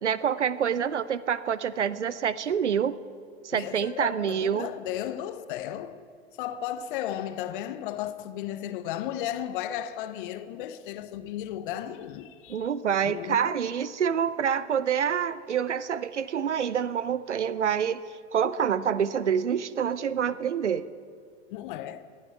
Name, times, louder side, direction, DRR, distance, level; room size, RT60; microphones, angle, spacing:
voice 1, 0.0-3.0 3.4-4.7 12.5-18.0 18.3-20.9, right 8 dB, 85° right, 0.6 m, -27 dB
voice 2, 3.5-6.0 6.4-12.7 13.0-13.6 21.5-22.0, left 11 dB, 50° left, 0.9 m, -34 dB
19.5 x 12.0 x 4.6 m
figure-of-eight pair, 95°, 34 cm